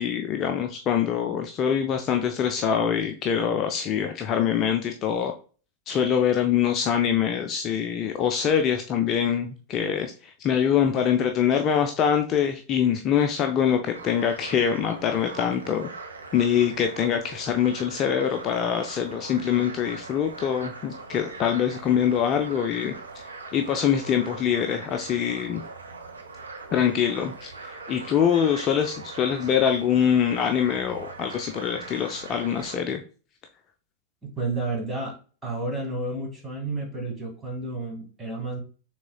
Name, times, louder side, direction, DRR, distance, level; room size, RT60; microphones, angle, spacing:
voice 1, 0.0-5.3 5.9-10.1 10.4-15.9 16.3-22.9 23.5-25.6 26.7-33.0, left 8 dB, 30° left, 5 dB, 0.5 m, -24 dB
sound 1, 13.9-32.8, right 3 dB, 75° right, 0.9 m, -41 dB
voice 2, 34.4-35.1 35.4-38.6, right 2 dB, 10° right, -1 dB, 2.2 m, -31 dB
6.1 x 3.7 x 2.3 m, 0.38 s
figure-of-eight pair, 90°, 0 cm